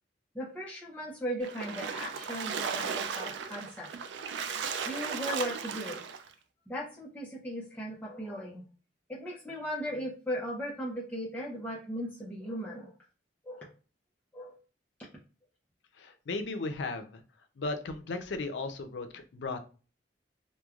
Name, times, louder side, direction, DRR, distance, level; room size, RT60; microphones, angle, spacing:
voice 1, 0.3-3.9 4.9-6.0 6.7-8.6 9.1-12.9 13.4-13.7 14.3-14.5, equal, 10° left, -5 dB, 0.5 m, -37 dB
Splash splatter, 1.4-6.3, right 6 dB, 75° right, 0.3 m, -36 dB
voice 2, 16.0-17.2 17.6-19.6, left 3 dB, 80° left, 8 dB, 0.5 m, -36 dB
3.0 x 2.1 x 2.3 m, 0.37 s
head